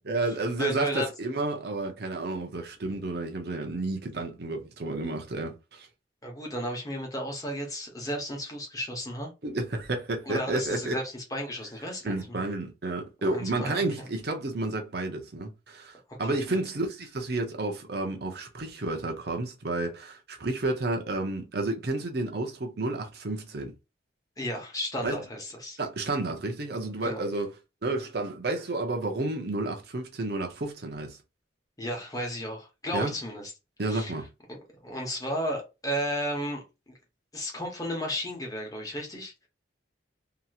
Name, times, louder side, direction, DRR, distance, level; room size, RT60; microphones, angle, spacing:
voice 1, 0.1-5.9 9.4-11.0 12.0-23.7 25.0-25.2 25.8-27.5 27.8-31.2 32.9-33.1 33.8-34.3, right 2 dB, 55° right, 0.7 m, -31 dB
voice 2, 0.6-1.1 6.2-9.3 10.3-12.4 13.2-13.8 16.2-16.6 24.4-25.8 27.0-27.2 31.8-33.5 33.9-34.1 34.5-36.6 37.3-39.5, equal, 20° left, 1.0 m, -34 dB
3.0 x 2.8 x 2.4 m
head